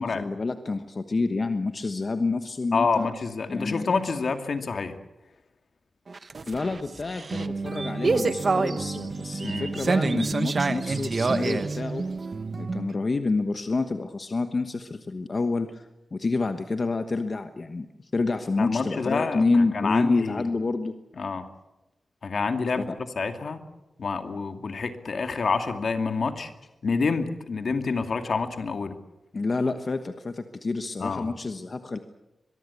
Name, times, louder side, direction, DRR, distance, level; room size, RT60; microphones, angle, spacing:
voice 1, 0.0-3.1 3.5-3.9 6.5-12.1 12.6-20.9 22.9-23.0 29.3-32.0, left 3 dB, 45° left, 8 dB, 1.2 m, -28 dB
voice 2, 2.7-5.0 9.4-9.7 18.6-20.5 21.2-21.5 22.2-23.6 24.0-26.5 26.8-29.0 31.0-31.3, left 4 dB, 65° left, 7 dB, 2.3 m, -28 dB
sound 1, 6.1-12.9, right 3 dB, 45° right, 1.2 m, -27 dB
23.5 x 22.5 x 8.4 m, 1.0 s
wide cardioid pair, 105°, 0 cm